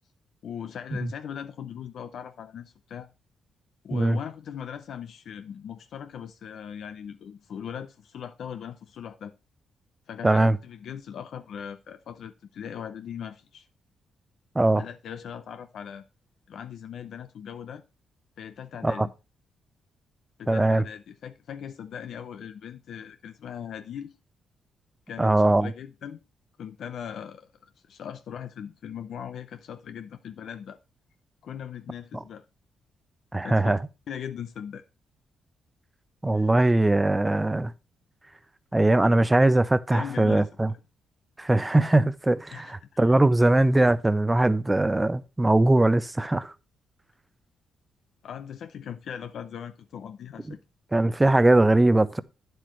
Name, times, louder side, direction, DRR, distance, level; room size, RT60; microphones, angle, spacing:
voice 1, 0.4-3.1 3.8-9.3 10.1-13.7 14.7-16.0 16.5-17.8 18.4-19.1 20.4-24.1 25.1-26.2 26.6-27.5 27.9-30.8 31.4-32.4 33.4-33.8 34.1-34.8 36.3-36.5 39.9-40.5 42.5-43.2 48.2-50.6, left 8 dB, 70° left, 0.6 m, -39 dB
voice 2, 10.2-10.6 14.5-14.8 18.8-19.1 20.5-20.8 25.2-25.7 33.3-33.8 36.2-37.7 38.7-40.7 41.4-46.5 50.9-52.2, right 2 dB, 15° right, 0.6 m, -21 dB
9.3 x 7.8 x 3.1 m
cardioid pair, 85°, 0 cm